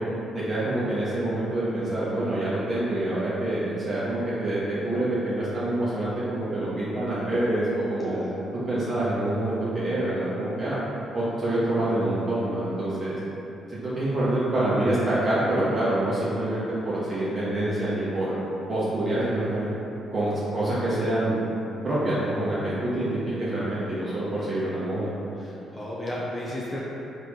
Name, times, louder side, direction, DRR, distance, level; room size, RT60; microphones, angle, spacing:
voice 1, 0.3-8.2 8.7-10.8 11.1-13.2 13.7-18.3 18.7-19.7 20.1-21.4 21.8-25.1, right 1 dB, 40° right, -10 dB, 0.7 m, -26 dB
voice 2, 8.0-8.3 25.4-26.8, left 1 dB, 20° left, -6 dB, 0.5 m, -34 dB
3.5 x 2.5 x 2.9 m, 2.9 s
cardioid pair, 90°, 0 cm